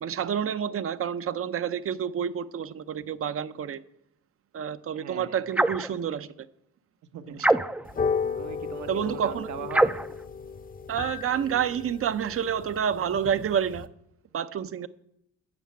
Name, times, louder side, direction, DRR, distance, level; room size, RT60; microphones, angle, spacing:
voice 1, 0.0-3.8 4.5-6.5 7.3-7.5 8.9-9.5 10.9-13.9 14.3-14.9, right 8 dB, 50° right, 0.7 m, -29 dB
voice 2, 4.9-5.4 7.1-7.4 8.1-10.0, right 8 dB, 70° right, 1.2 m, -40 dB
sound 1, 5.5-5.9 7.4-8.0 9.7-10.1, right 1 dB, 5° right, 0.4 m, -23 dB
sound 2, 7.9-13.9, left 5 dB, 30° left, 0.7 m, -34 dB
9.6 x 6.5 x 8.6 m
cardioid pair, 90°, 30 cm